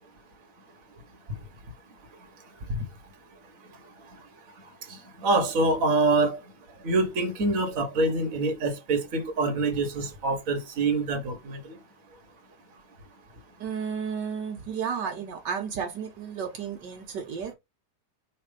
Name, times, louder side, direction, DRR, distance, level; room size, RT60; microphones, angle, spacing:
voice 1, 4.9-6.4 6.8-11.8, right 2 dB, 50° right, 1.8 m, -25 dB
voice 2, 13.6-17.5, right 7 dB, 75° right, 1.7 m, -33 dB
5.5 x 3.4 x 5.2 m
omnidirectional pair, 1.9 m